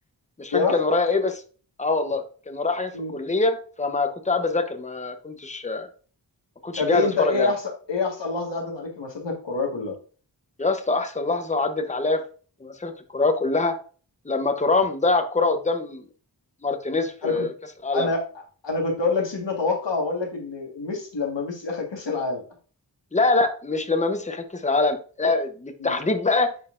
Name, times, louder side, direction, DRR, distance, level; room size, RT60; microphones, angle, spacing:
voice 1, 0.4-1.4 1.8-5.9 6.6-7.5 10.6-12.2 12.6-13.8 14.3-16.0 16.6-17.5 17.8-18.1 23.1-26.5, left 3 dB, 15° left, 7 dB, 0.8 m, -24 dB
voice 2, 6.8-9.9 17.2-17.4 17.9-18.2 18.6-22.4 25.8-26.0, left 3 dB, 75° left, 1 dB, 1.7 m, -26 dB
9.8 x 4.0 x 2.5 m, 0.39 s
wide cardioid pair, 80°, 43 cm